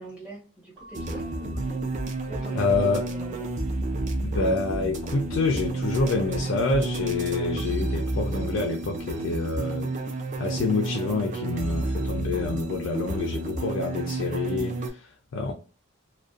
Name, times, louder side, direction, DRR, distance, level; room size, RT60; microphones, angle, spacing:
voice 1, 0.0-2.0 2.2-3.5, right 2 dB, 5° right, 0.9 m, -43 dB
Keyboard (musical) / Bell, 0.7-3.2, right 1 dB, 60° right, 0.8 m, -51 dB
sound 1, 0.9-14.9, right 2 dB, 35° right, 0.3 m, -30 dB
voice 2, 2.6-3.1 4.2-9.9 10.4-15.5, left 3 dB, 65° left, 0.3 m, -27 dB
2.4 x 2.1 x 2.4 m
head